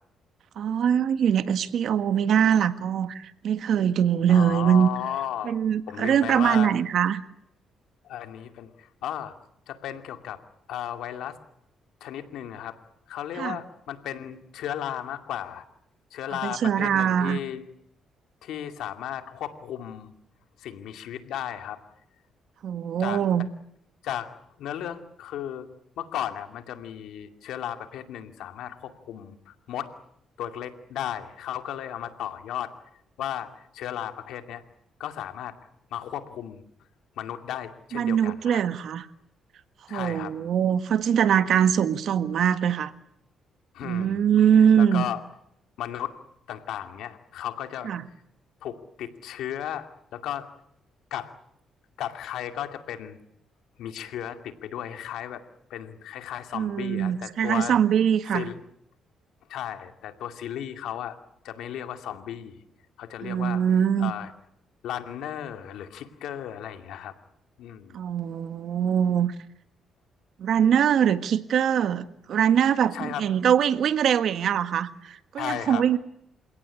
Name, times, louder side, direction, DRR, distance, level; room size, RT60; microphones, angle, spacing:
voice 1, 0.6-4.9 5.4-7.2 13.4-13.6 16.4-17.4 22.6-23.4 37.9-39.1 39.9-42.9 43.8-45.0 47.8-48.0 56.5-58.5 63.2-64.1 67.9-69.3 70.4-76.0, right 8 dB, 65° right, 12 dB, 1.6 m, -22 dB
voice 2, 4.3-5.6 5.9-6.7 8.0-9.3 9.7-10.4 10.7-11.4 12.0-12.8 13.1-15.6 16.1-17.6 18.4-20.1 20.6-21.8 23.0-23.2 24.0-25.7 26.0-29.9 30.4-32.7 33.2-34.6 35.0-35.6 35.9-36.6 37.2-38.6 39.9-40.4 43.7-44.2 44.8-45.2 45.8-46.1 46.5-47.9 48.6-50.5 51.1-51.3 52.0-53.2 53.8-55.4 55.7-57.8 58.3-58.6 59.5-61.2 61.4-62.6 63.0-63.6 64.0-64.3 64.8-67.1 67.6-68.0 72.9-73.3 75.4-75.9, left 10 dB, 85° left, 8 dB, 2.4 m, -35 dB
28.5 x 17.5 x 9.8 m, 0.75 s
cardioid pair, 90°, 0 cm